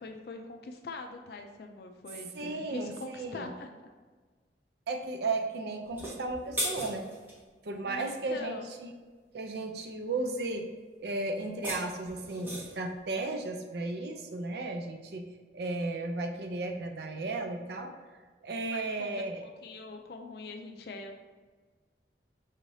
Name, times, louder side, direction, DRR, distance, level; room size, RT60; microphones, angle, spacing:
voice 1, 0.0-3.7 7.9-8.7 18.7-21.2, left 3 dB, 60° left, 4 dB, 0.3 m, -43 dB
voice 2, 2.3-3.5 4.9-7.1 7.6-8.9 9.3-10.7 11.0-15.3 15.5-17.9 18.4-19.4, right 2 dB, 65° right, 4 dB, 0.5 m, -34 dB
sound 1, 5.8-7.4 11.4-12.9, equal, 10° right, 0.9 m, -37 dB
5.6 x 3.2 x 2.6 m, 1.4 s
head